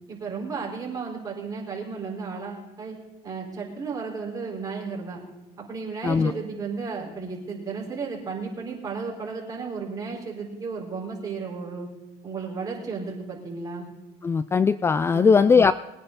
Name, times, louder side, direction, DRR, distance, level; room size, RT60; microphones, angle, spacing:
voice 1, 0.1-3.0 3.2-5.2 5.6-11.9 12.2-13.9 15.1-15.4, right 4 dB, 25° right, -3 dB, 4.5 m, -33 dB
voice 2, 14.2-15.7, left 5 dB, 20° left, 15 dB, 0.3 m, -19 dB
21.5 x 9.4 x 4.0 m, 1.1 s
cardioid pair, 115°, 14 cm